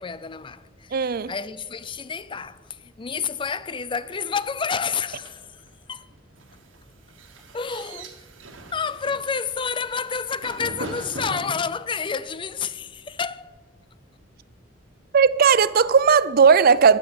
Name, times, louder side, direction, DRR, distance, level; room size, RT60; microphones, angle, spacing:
voice 1, 0.0-1.0 1.3-6.1 7.5-8.2 8.7-13.5, left 6 dB, 25° left, 0.4 m, -29 dB
voice 2, 0.9-1.3 15.1-17.0, right 6 dB, 50° right, 0.4 m, -16 dB
sound 1, 4.9-11.5, right 2 dB, 90° right, 1.7 m, -41 dB
11.5 x 8.9 x 8.8 m
head